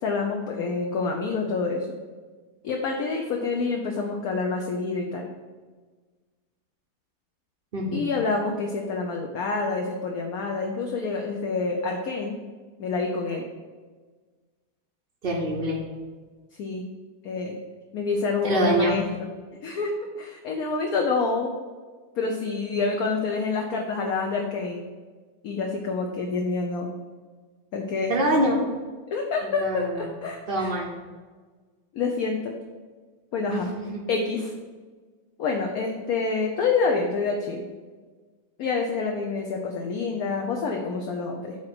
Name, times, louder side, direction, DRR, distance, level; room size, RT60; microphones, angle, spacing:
voice 1, 0.0-2.0 2.6-5.3 7.9-12.4 12.8-13.4 16.5-16.9 17.2-17.6 17.9-19.3 19.6-21.5 22.2-24.8 25.4-26.9 27.7-28.1 29.1-30.7 31.9-32.5 33.3-33.7 34.1-34.5 35.4-37.6 38.6-41.6, left 4 dB, 65° left, 2 dB, 1.0 m, -27 dB
voice 2, 7.7-8.0 15.2-15.8 18.4-19.0 28.1-28.6 29.6-30.1 30.5-30.9 33.5-34.0, right 1 dB, 45° right, -3 dB, 0.7 m, -25 dB
8.7 x 3.0 x 6.0 m, 1.4 s
omnidirectional pair, 2.0 m